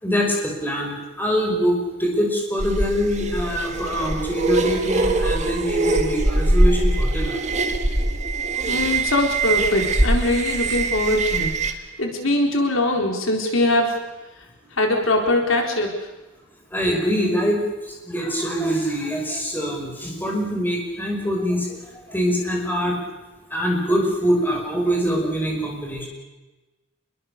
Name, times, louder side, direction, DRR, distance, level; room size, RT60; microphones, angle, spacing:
voice 1, 0.0-7.4 16.7-17.6 18.1-21.7 22.1-23.0 23.5-26.1, equal, 10° left, 0 dB, 5.6 m, -23 dB
sound 1, 2.6-11.7, right 2 dB, 35° right, 1.9 m, -22 dB
voice 2, 8.7-11.5 12.0-13.9 14.8-15.9, left 1 dB, 75° left, 2 dB, 4.1 m, -21 dB
27.5 x 22.0 x 6.8 m, 1.1 s
head